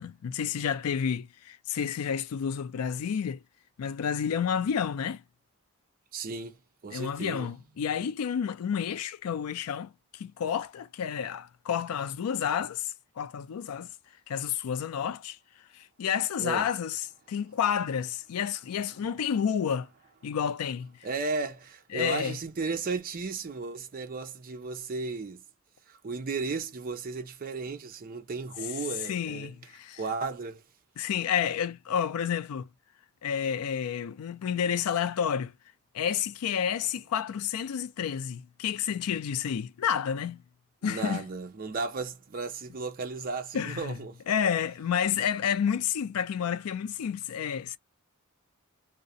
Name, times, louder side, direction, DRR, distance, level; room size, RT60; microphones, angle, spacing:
voice 1, 0.0-3.4 3.8-5.2 6.9-13.9 14.3-15.4 15.7-19.9 20.2-21.0 21.9-22.4 29.0-30.0 31.0-32.7 33.2-35.5 35.9-40.4 40.8-41.2 43.5-44.0 44.3-47.8, left 8 dB, 85° left, 0.4 m, -30 dB
voice 2, 6.1-6.6 6.8-7.5 16.4-16.7 21.0-25.4 25.9-29.5 30.0-30.6 40.8-44.2, right 4 dB, 40° right, 0.5 m, -34 dB
2.4 x 2.1 x 2.6 m
head